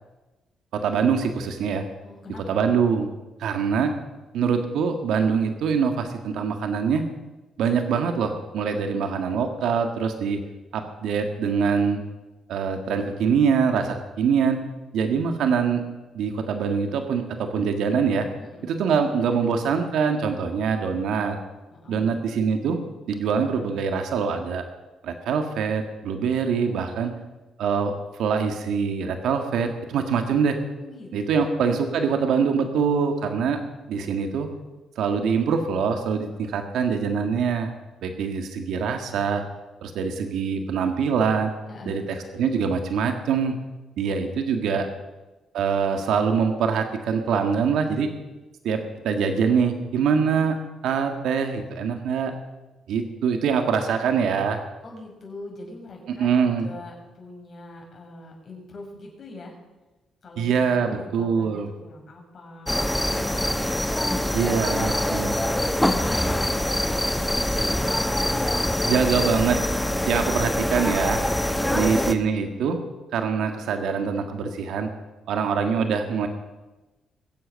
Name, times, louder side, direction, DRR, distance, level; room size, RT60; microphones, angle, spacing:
voice 1, 0.7-1.8 2.5-3.1 3.4-3.9 4.3-7.1 7.6-10.4 10.7-12.0 12.5-14.6 14.9-15.8 16.1-18.3 18.6-21.4 21.9-22.8 23.1-24.6 25.0-27.1 27.6-30.6 31.1-33.6 33.9-34.5 35.0-37.7 38.0-39.4 39.8-41.5 41.9-43.6 44.0-44.9 45.5-48.1 48.6-50.6 50.8-52.3 52.9-54.6 56.2-56.7 60.4-61.7 64.3-65.3 68.9-69.6 70.1-71.2 71.7-72.8 73.1-74.9 75.3-76.3, right 6 dB, 80° right, 6 dB, 1.7 m, -24 dB
voice 2, 2.0-2.7 18.4-18.7 21.7-22.1 26.7-27.3 30.8-31.5 41.7-42.0 44.0-45.0 54.8-59.6 60.2-63.5 64.4-67.8 71.6-71.8, left 2 dB, 45° left, 0 dB, 6.0 m, -44 dB
sound 1, 62.7-72.1, left 1 dB, 5° left, 1.1 m, -24 dB
22.0 x 8.1 x 6.4 m, 1.1 s
cardioid pair, 90°, 0 cm